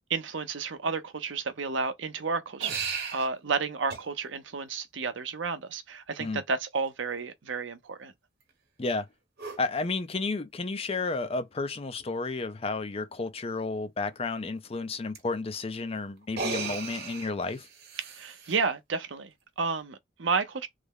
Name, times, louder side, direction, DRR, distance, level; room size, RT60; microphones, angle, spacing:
voice 1, 0.1-2.8 3.1-8.1 18.1-20.7, right 4 dB, 80° right, 0.7 m, -31 dB
sound 1, 2.6-3.3 3.9-4.0 6.1-6.3 9.4-9.6 11.1-11.2 11.6-11.7 12.0-12.1 15.1-15.2 16.2-18.6, right 5 dB, 60° right, 1.2 m, -36 dB
voice 2, 9.6-17.7, left 3 dB, 30° left, 0.5 m, -32 dB
3.3 x 2.1 x 3.7 m
head